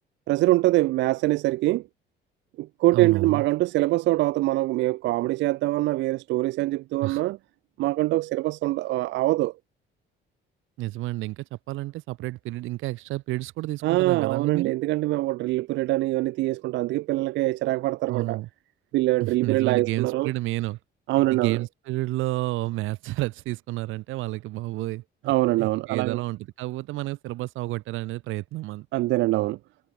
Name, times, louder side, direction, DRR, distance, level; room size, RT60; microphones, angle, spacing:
voice 1, 0.3-1.8 2.6-7.4 7.8-9.5 13.8-18.4 18.9-20.3 21.1-21.6 25.3-26.2 28.9-29.6, right 18 dB, 65° right, 0.4 m, -24 dB
voice 2, 2.9-3.4 7.0-7.2 10.8-14.7 18.1-18.5 19.2-20.8 21.3-25.3 25.6-28.9, right 18 dB, 85° right, 2.2 m, -30 dB
cardioid pair, 155°, 20 cm